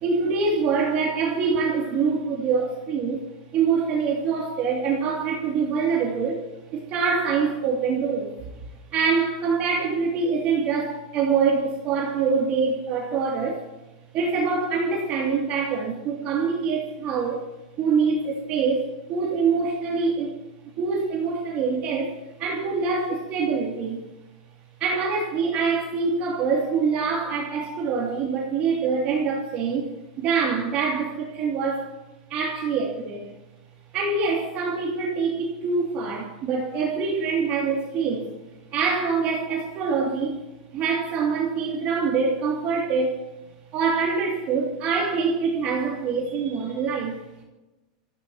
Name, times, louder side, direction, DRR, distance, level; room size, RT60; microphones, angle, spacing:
voice 1, 0.0-3.2 3.5-6.4 6.7-8.3 8.9-13.6 14.1-17.4 17.8-20.3 20.8-22.1 22.4-24.0 24.8-31.9 32.3-33.2 33.9-38.3 38.7-40.4 40.7-43.1 43.7-47.2, right 5 dB, 35° right, -1 dB, 2.8 m, -25 dB
26.0 x 14.5 x 3.0 m, 1.0 s
supercardioid pair, 160°, 4 cm